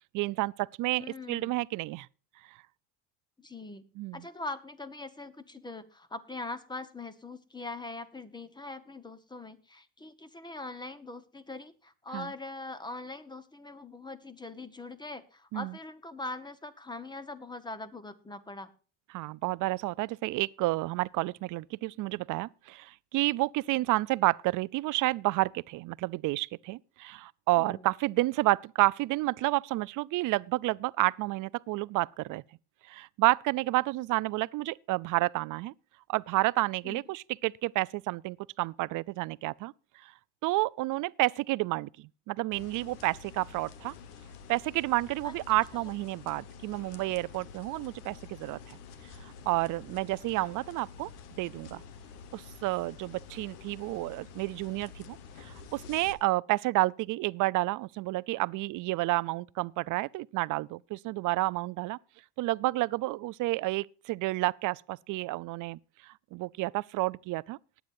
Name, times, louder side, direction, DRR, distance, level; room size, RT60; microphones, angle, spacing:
voice 1, 0.1-2.1 4.0-4.2 12.1-12.3 15.5-15.7 19.1-32.4 32.9-35.7 36.1-39.7 40.0-40.1 40.4-43.9 44.5-48.8 49.2-51.1 51.4-51.8 52.3-62.0 62.4-67.6, right 20 dB, 45° right, 0.5 m, -30 dB
voice 2, 1.0-1.5 3.4-3.8 4.1-18.7 27.6-27.9 36.8-37.1 45.2-45.3, left 2 dB, 10° left, 1.1 m, -42 dB
sound 1, 42.5-56.1, left 6 dB, 90° left, 1.5 m, -49 dB
19.5 x 9.3 x 2.6 m
supercardioid pair, 115°, 45 cm